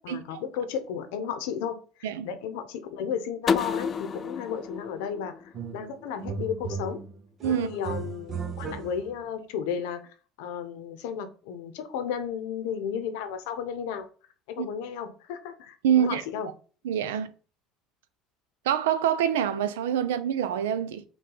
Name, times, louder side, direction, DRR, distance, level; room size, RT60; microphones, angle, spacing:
voice 1, 0.0-7.0 7.6-10.0 10.4-14.1 14.5-16.5, left 7 dB, 75° left, 0.7 m, -34 dB
sound 1, 3.5-6.3, left 6 dB, 40° left, 0.3 m, -31 dB
sound 2, 5.5-5.9 6.2-9.3, right 5 dB, 45° right, 0.7 m, -36 dB
voice 2, 15.8-16.2 16.8-17.3 18.7-21.0, right 9 dB, 85° right, 0.4 m, -25 dB
5.6 x 2.3 x 3.8 m
hypercardioid pair, 80°, 0 cm